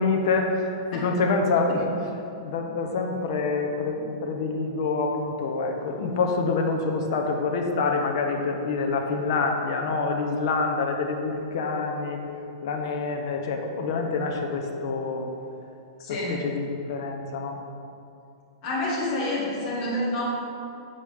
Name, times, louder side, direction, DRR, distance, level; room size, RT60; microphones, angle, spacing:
voice 1, 0.0-1.9 2.4-12.2 12.6-15.3 16.3-17.6, left 4 dB, 50° left, 3 dB, 0.9 m, -26 dB
voice 2, 16.0-16.5 18.6-20.2, left 1 dB, 30° left, -7 dB, 1.6 m, -28 dB
7.2 x 6.6 x 3.5 m, 2.7 s
supercardioid pair, 170°, 3 cm